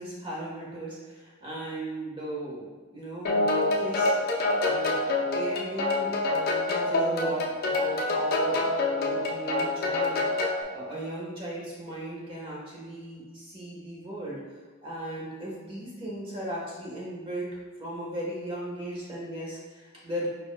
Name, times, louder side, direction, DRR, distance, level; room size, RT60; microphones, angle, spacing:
voice 1, 0.0-4.1 4.6-5.0 5.3-10.2 10.7-14.4 14.8-20.3, right 1 dB, 25° right, -5 dB, 1.2 m, -37 dB
sound 1, 3.2-10.6, left 2 dB, 45° left, 0.6 m, -26 dB
5.1 x 4.5 x 2.2 m, 1.4 s
head